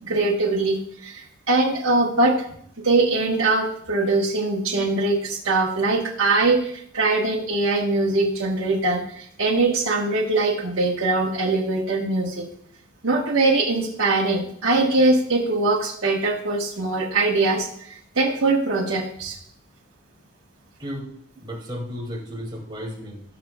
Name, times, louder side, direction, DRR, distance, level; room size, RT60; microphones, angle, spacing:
voice 1, 0.0-2.4 2.8-12.5 13.0-19.4, right 2 dB, 80° right, -2 dB, 1.2 m, -22 dB
voice 2, 21.4-23.2, equal, 25° right, 0 dB, 2.2 m, -33 dB
18.0 x 6.0 x 2.3 m, 0.65 s
head